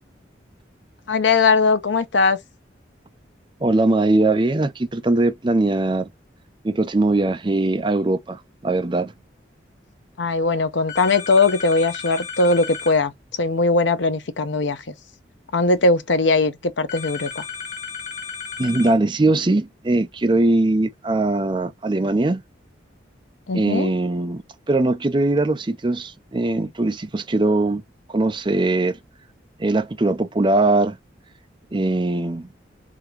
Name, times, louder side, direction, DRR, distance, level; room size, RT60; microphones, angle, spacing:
voice 1, 1.1-2.4 10.2-13.1 13.4-14.8 15.5-17.4 23.5-23.9, left 3 dB, 75° left, 0.7 m, -19 dB
voice 2, 3.6-6.1 6.6-9.1 18.6-22.4 23.5-24.4 24.7-27.8 28.1-29.0 29.6-31.0 31.7-32.5, right 2 dB, 25° right, 0.5 m, -20 dB
sound 1, 10.9-13.0 16.9-19.0, left 6 dB, 40° left, 1.1 m, -34 dB
3.7 x 3.4 x 3.1 m
head